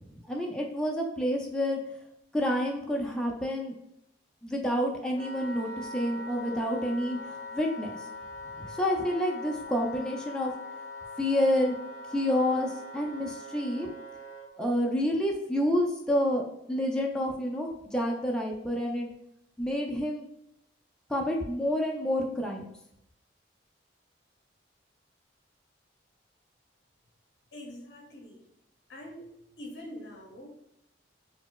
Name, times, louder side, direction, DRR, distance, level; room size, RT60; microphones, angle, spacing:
voice 1, 0.3-1.8 2.3-3.7 4.4-8.0 8.6-10.5 11.2-11.7 12.1-13.9 14.6-19.1 19.6-20.3 21.1-22.6, equal, 5° left, -1 dB, 0.3 m, -29 dB
Wind instrument woodwind instrument, 5.1-14.5, left 1 dB, 20° left, 1.1 m, -42 dB
voice 2, 27.5-28.4 28.9-29.3 29.6-30.5, left 1 dB, 65° left, 0 dB, 0.6 m, -44 dB
4.1 x 2.0 x 2.2 m, 0.80 s
head